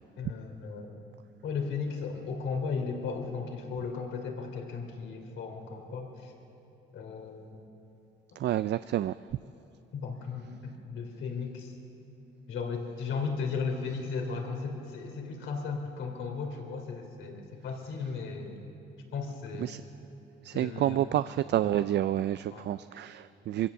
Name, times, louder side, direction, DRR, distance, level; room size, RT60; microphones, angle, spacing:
voice 1, 0.2-1.0 1.4-6.3 6.9-7.7 9.9-11.7 12.5-18.6 19.1-19.8 20.5-21.2 21.6-22.2 22.5-22.6, left 5 dB, 75° left, 3 dB, 3.1 m, -36 dB
voice 2, 8.4-9.1 19.6-19.8 20.4-23.7, right 12 dB, 60° right, 14 dB, 0.4 m, -29 dB
23.0 x 16.0 x 7.1 m, 3.0 s
cardioid pair, 90°, 20 cm